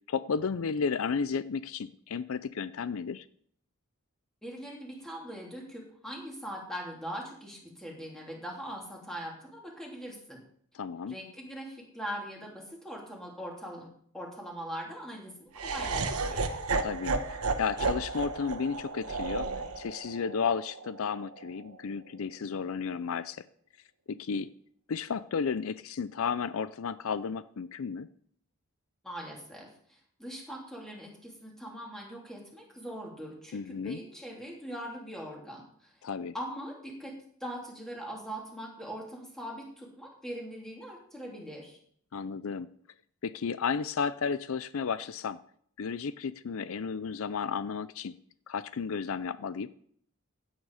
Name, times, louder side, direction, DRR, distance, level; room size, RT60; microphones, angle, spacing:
voice 1, 0.1-3.2 10.7-11.1 16.8-19.5 19.8-23.4 24.1-24.5 24.9-28.1 33.5-34.0 36.0-36.3 42.1-42.7 43.2-45.4 45.8-48.1 48.5-49.7, left 6 dB, 70° left, 15 dB, 0.5 m, -33 dB
voice 2, 4.4-10.4 11.1-16.5 29.0-35.9 36.3-41.8, equal, ahead, -2 dB, 3.2 m, -41 dB
Laughter, 15.5-21.7, right 3 dB, 85° right, 1.2 m, -33 dB
16.0 x 8.9 x 4.9 m, 0.62 s
head